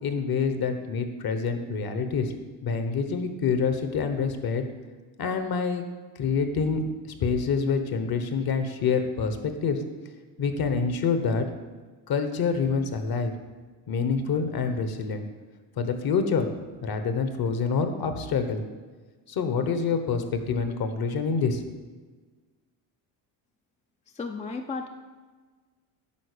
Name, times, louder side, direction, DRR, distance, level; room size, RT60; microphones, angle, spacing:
voice 1, 0.0-2.3 2.6-4.6 5.2-5.8 6.2-6.8 7.2-9.8 10.4-11.5 12.1-13.3 13.9-15.3 15.8-16.5 16.8-18.6 19.3-21.6, left 5 dB, 45° left, 8 dB, 1.2 m, -26 dB
voice 2, 24.2-24.9, left 4 dB, 15° left, 4 dB, 0.5 m, -33 dB
9.8 x 3.9 x 6.8 m, 1.4 s
supercardioid pair, 95°, 50 cm